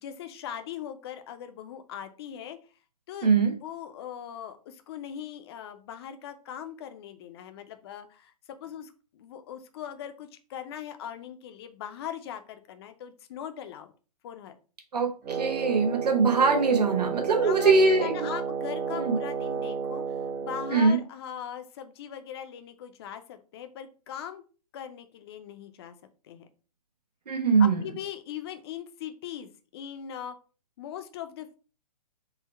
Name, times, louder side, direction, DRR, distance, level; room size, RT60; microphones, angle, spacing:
voice 1, 0.0-2.6 3.1-3.3 3.6-8.3 8.6-13.9 14.2-14.6 17.4-24.4 24.7-25.9 26.2-26.5 27.6-30.3 30.8-31.6, left 9 dB, 40° left, 9 dB, 0.5 m, -40 dB
voice 2, 3.2-3.5 14.9-18.1 18.9-19.2 20.7-21.0 27.3-27.8, right 4 dB, 85° right, 4 dB, 0.9 m, -22 dB
Wind instrument woodwind instrument, 15.2-20.9, right 6 dB, 20° right, 0.7 m, -32 dB
3.8 x 2.1 x 4.1 m, 0.36 s
hypercardioid pair, 135°, 20 cm